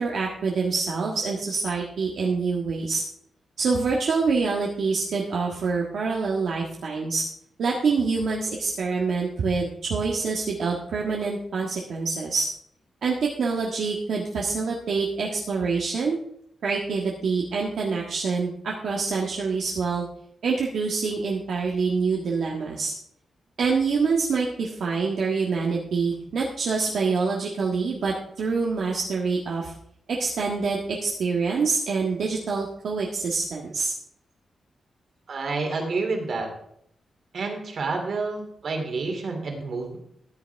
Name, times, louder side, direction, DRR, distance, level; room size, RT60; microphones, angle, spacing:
voice 1, 0.0-3.0 3.6-7.2 7.6-12.5 13.0-16.2 16.6-20.0 20.4-22.9 23.6-29.7 30.1-33.9, right 4 dB, 65° right, -2 dB, 1.6 m, -26 dB
voice 2, 35.3-36.5 37.3-40.0, right 3 dB, 50° right, 3 dB, 2.8 m, -29 dB
14.5 x 10.5 x 3.5 m, 0.71 s
wide cardioid pair, 170°, 0 cm